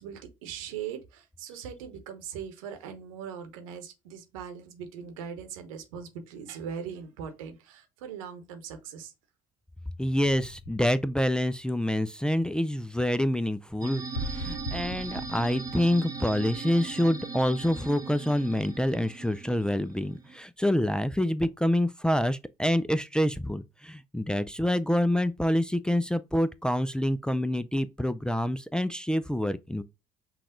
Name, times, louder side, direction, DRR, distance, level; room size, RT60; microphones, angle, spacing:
voice 1, 0.0-9.1, right 7 dB, 80° right, 1.1 m, -40 dB
voice 2, 10.0-29.8, left 1 dB, 5° left, 0.4 m, -27 dB
sound 1, 10.4-11.7 14.1-16.7, equal, 80° left, 0.9 m, -39 dB
sound 2, 13.8-20.4, right 4 dB, 20° right, 0.9 m, -39 dB
5.8 x 2.4 x 3.7 m
hypercardioid pair, 60°, 17 cm